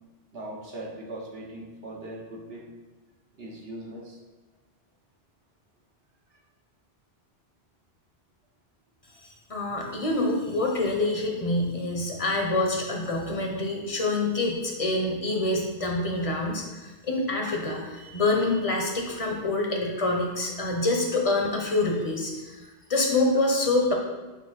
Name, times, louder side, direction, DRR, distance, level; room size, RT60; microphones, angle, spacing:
voice 1, 0.3-2.7 3.4-4.2, right 1 dB, 65° right, -2 dB, 1.5 m, -39 dB
voice 2, 9.2-22.6 22.9-23.9, left 2 dB, 35° left, 0 dB, 1.1 m, -26 dB
8.5 x 2.9 x 5.8 m, 1.2 s
omnidirectional pair, 1.1 m